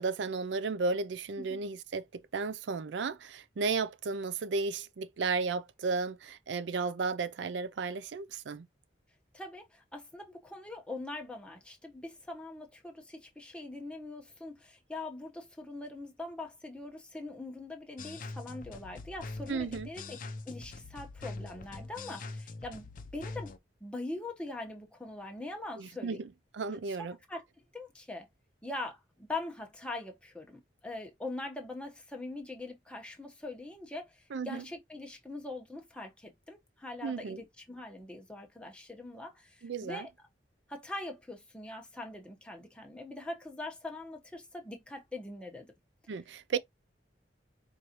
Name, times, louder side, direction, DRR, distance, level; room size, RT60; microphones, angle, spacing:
voice 1, 0.0-8.7 19.5-19.9 25.8-26.3 26.5-27.2 34.3-34.6 37.0-37.4 39.6-40.1 46.1-46.6, right 4 dB, 80° right, 0.4 m, -34 dB
voice 2, 9.3-20.2 20.5-23.5 23.8-26.2 26.9-27.0 27.3-27.5 27.7-28.3 28.6-40.1 40.7-45.7, left 2 dB, 5° left, 1.0 m, -42 dB
sound 1, 18.0-23.6, left 3 dB, 50° left, 0.5 m, -43 dB
4.6 x 2.6 x 2.9 m
head